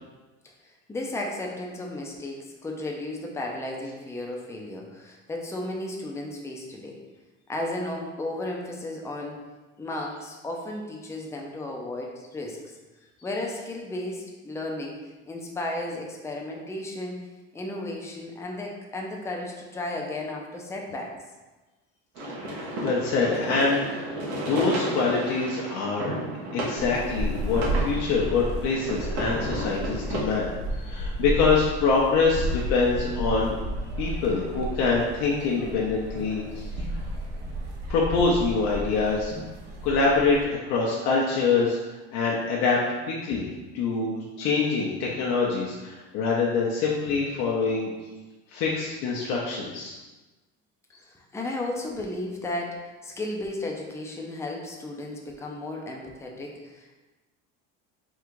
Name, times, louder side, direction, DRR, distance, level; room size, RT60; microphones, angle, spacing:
voice 1, 0.6-7.0 7.5-9.4 9.8-12.6 13.2-17.2 17.5-21.2 51.0-57.0, left 1 dB, 10° left, -1 dB, 0.6 m, -34 dB
sound 1, 22.2-30.2, right 1 dB, 60° right, 1.2 m, -33 dB
voice 2, 22.5-26.1 26.5-33.6 34.0-36.7 37.9-39.3 39.8-40.4 40.6-41.8 42.1-42.8 43.1-43.5 43.7-47.9 48.5-50.0, left 4 dB, 70° left, -4 dB, 0.8 m, -25 dB
sound 2, 26.8-40.4, right 1 dB, 90° right, 0.8 m, -32 dB
3.7 x 2.4 x 4.6 m, 1.2 s
cardioid pair, 120°, 29 cm